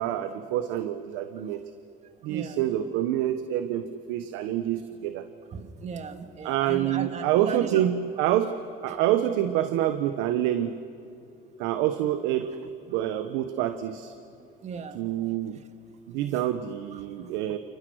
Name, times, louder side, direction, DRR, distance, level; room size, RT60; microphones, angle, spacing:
voice 1, 0.0-1.6 2.2-5.2 6.4-8.5 8.8-10.7 11.6-12.6 12.9-14.1 14.9-15.6 16.1-17.6, right 12 dB, 85° right, 9 dB, 1.2 m, -27 dB
voice 2, 2.2-2.6 5.5-7.9 8.9-9.0 14.4-15.0 16.9-17.3, right 6 dB, 40° right, 7 dB, 2.3 m, -37 dB
29.5 x 29.0 x 6.4 m, 2.7 s
cardioid pair, 120°, 18 cm